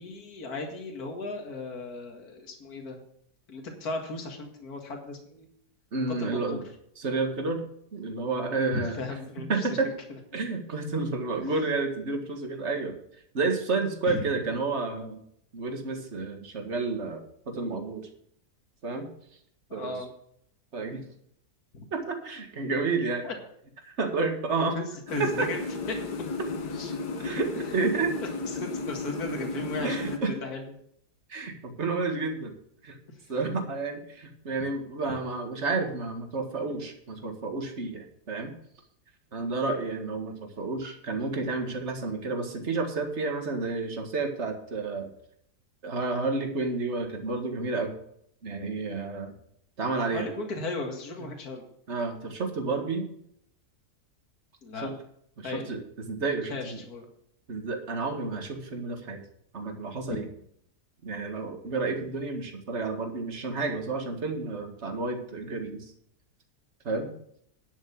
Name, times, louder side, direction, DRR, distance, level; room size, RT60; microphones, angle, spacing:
voice 1, 0.0-3.0 3.5-5.5 6.1-6.6 8.7-9.7 10.1-10.2 14.1-14.3 19.7-20.1 21.7-21.9 23.2-23.3 24.7-24.9 25.1-25.6 25.9-26.0 26.7-26.9 28.2-30.7 50.1-51.6 54.6-54.9 55.4-55.7 56.5-57.1, left 3 dB, 65° left, 2 dB, 2.4 m, -36 dB
voice 2, 5.9-6.6 7.0-7.6 7.9-9.0 9.5-9.9 10.3-13.0 13.3-15.2 15.5-18.1 18.8-19.1 19.7-20.0 20.7-21.0 21.9-23.3 23.9-24.8 25.2-25.5 27.2-28.1 29.8-30.4 31.3-32.5 32.8-33.0 33.3-38.5 39.3-45.1 45.8-47.9 48.4-49.3 49.8-50.3 51.9-53.1 54.8-54.9 55.4-55.8 56.1-56.8 57.5-59.2 59.5-60.3 61.0-65.9 66.8-67.1, right 3 dB, 45° right, 4 dB, 2.1 m, -30 dB
sound 1, 25.1-30.2, left 3 dB, 85° left, 2.0 m, -34 dB
10.5 x 7.8 x 7.1 m, 0.69 s
omnidirectional pair, 1.7 m